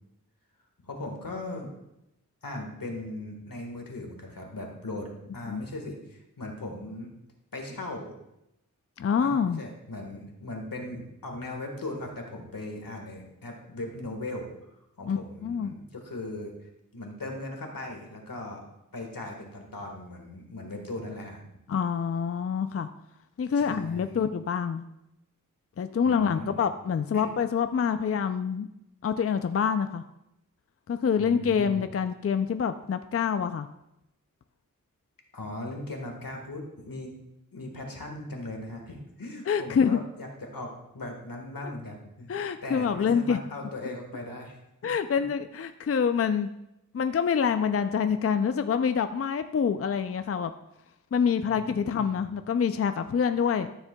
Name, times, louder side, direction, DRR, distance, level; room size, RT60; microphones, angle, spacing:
voice 1, 0.8-1.7 2.4-7.1 7.5-8.2 9.2-14.7 15.0-18.7 18.9-21.4 23.5-24.2 26.0-26.6 27.1-27.3 31.2-31.8 35.3-37.2 37.5-44.9 45.2-45.3 51.5-52.2, left 2 dB, 85° left, 2 dB, 1.6 m, -39 dB
voice 2, 9.0-9.6 15.1-15.7 21.7-22.9 23.4-24.8 25.8-28.7 29.0-30.0 30.9-33.7 39.5-40.0 42.3-43.4 44.8-46.5 46.9-50.5 51.1-53.7, left 6 dB, 45° left, 9 dB, 0.4 m, -26 dB
13.0 x 7.2 x 2.3 m, 0.86 s
wide cardioid pair, 55°, 33 cm